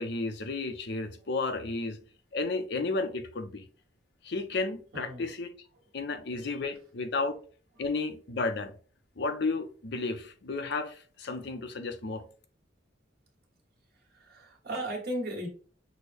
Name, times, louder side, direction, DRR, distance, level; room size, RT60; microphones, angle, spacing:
voice 1, 0.0-2.0 2.3-3.6 4.2-5.5 5.9-7.4 7.8-8.7 9.2-12.2, left 3 dB, 65° left, 0.6 m, -32 dB
voice 2, 4.9-5.3 6.1-6.3 7.2-7.3 7.7-7.9 14.1-15.5, right 1 dB, 55° right, 1.4 m, -37 dB
6.2 x 2.1 x 3.3 m
head